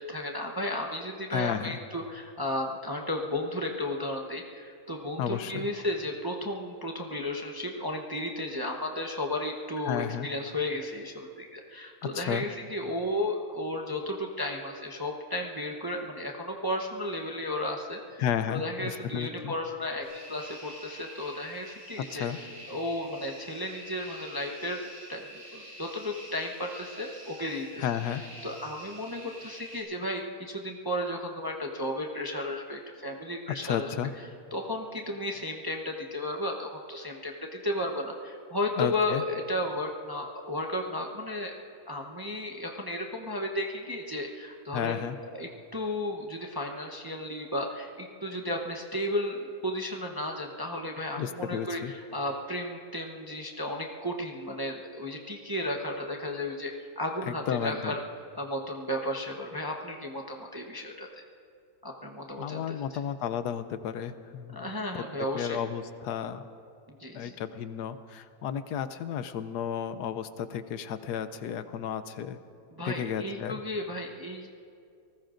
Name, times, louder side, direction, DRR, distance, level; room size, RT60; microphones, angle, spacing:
voice 1, 0.1-18.2 18.5-24.8 25.1-33.9 34.5-41.5 41.9-45.0 45.3-58.0 58.3-61.2 61.8-63.0 64.5-65.6 67.0-67.4 72.7-74.5, left 1 dB, 20° right, 0 dB, 0.7 m, -34 dB
voice 2, 1.3-1.8 5.2-5.7 9.9-10.3 12.1-12.4 18.2-19.5 22.0-22.4 27.8-28.2 33.6-34.1 38.8-39.2 44.7-45.2 51.2-51.9 57.3-57.9 62.4-64.7 64.9-65.0 65.3-66.4 67.1-72.4 72.8-73.5, left 9 dB, 80° left, 11 dB, 1.2 m, -32 dB
sound 1, 20.0-29.8, equal, 90° right, 5.5 m, -47 dB
29.0 x 19.5 x 2.6 m, 2.4 s
omnidirectional pair, 1.7 m